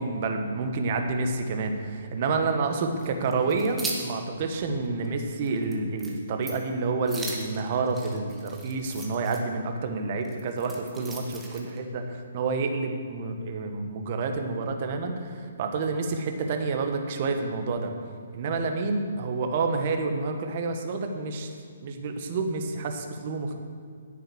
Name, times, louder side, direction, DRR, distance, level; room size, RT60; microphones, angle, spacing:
voice 1, 0.0-17.9 18.3-21.5 21.8-23.6, right 3 dB, 45° right, 5 dB, 1.5 m, -29 dB
sound 1, 3.0-4.1 4.5-4.6 5.1-5.2 5.4-5.7 6.0-6.2 6.4-6.7 7.1-9.4 10.2-11.8, right 3 dB, 10° right, 1.7 m, -38 dB
10.0 x 9.0 x 6.4 m, 2.2 s
figure-of-eight pair, 135°, 0 cm